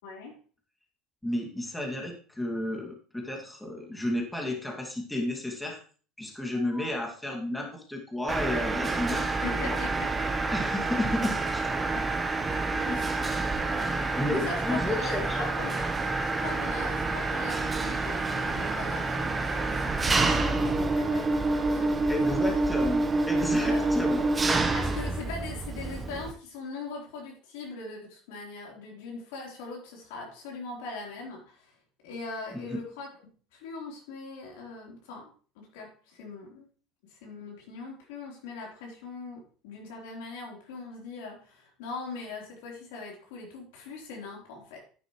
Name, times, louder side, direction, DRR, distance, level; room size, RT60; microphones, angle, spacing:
voice 1, 0.0-0.4 9.4-10.5 11.9-12.2 12.8-13.0 14.3-15.8 16.4-22.4 23.6-23.9 24.7-31.7 32.0-33.1 33.5-36.7 37.1-44.8, left 3 dB, 80° left, -1 dB, 4.0 m, -41 dB
voice 2, 1.2-5.8 6.2-9.8 10.5-11.7 12.6-13.6 14.1-15.5 22.1-24.3 32.7-32.8, left 1 dB, 5° left, 1 dB, 2.4 m, -32 dB
Mechanisms, 8.3-26.3, right 3 dB, 20° right, 1.1 m, -28 dB
10.0 x 9.4 x 3.2 m, 0.41 s
supercardioid pair, 105°, 0 cm